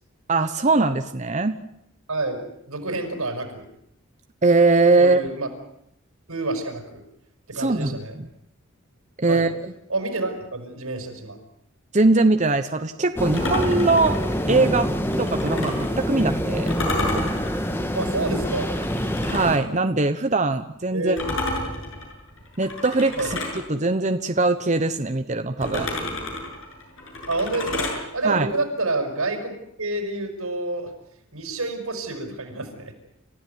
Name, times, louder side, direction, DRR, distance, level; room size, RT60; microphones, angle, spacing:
voice 1, 0.3-1.6 4.4-5.2 7.6-8.0 9.2-9.5 11.9-14.2 14.5-14.9 15.2-16.7 19.2-21.2 22.6-23.4 23.7-25.9 28.2-28.5, right 3 dB, 35° right, 8 dB, 1.0 m, -21 dB
voice 2, 2.1-3.6 5.0-5.5 6.3-7.0 7.5-8.2 9.3-9.5 9.9-11.4 15.5-15.6 17.9-18.7 20.9-21.2 23.2-23.3 27.3-30.9 31.3-32.9, right 2 dB, 90° right, 5 dB, 6.3 m, -28 dB
sound 1, 13.2-19.6, equal, 10° left, 1.6 m, -26 dB
sound 2, 13.3-15.9 16.7-19.7 21.2-23.6 25.6-28.0, left 1 dB, 70° left, 7.8 m, -30 dB
29.5 x 15.5 x 9.5 m, 0.77 s
head